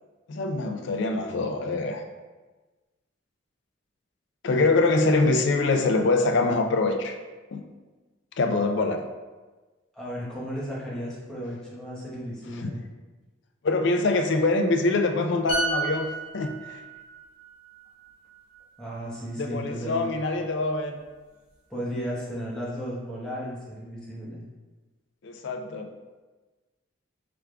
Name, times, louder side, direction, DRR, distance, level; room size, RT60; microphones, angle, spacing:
voice 1, 0.3-2.0 4.4-7.2 7.5-7.7 8.4-9.0 12.5-12.7 13.6-16.1 16.3-16.8 19.4-21.0 25.2-25.9, left 3 dB, 60° left, 5 dB, 0.4 m, -24 dB
voice 2, 9.9-12.8 18.8-20.1 21.7-24.4, equal, 5° left, -8 dB, 1.0 m, -34 dB
sound 1, 15.5-19.1 19.4-19.6, right 3 dB, 25° left, 1.2 m, -33 dB
4.8 x 3.5 x 2.3 m, 1.2 s
head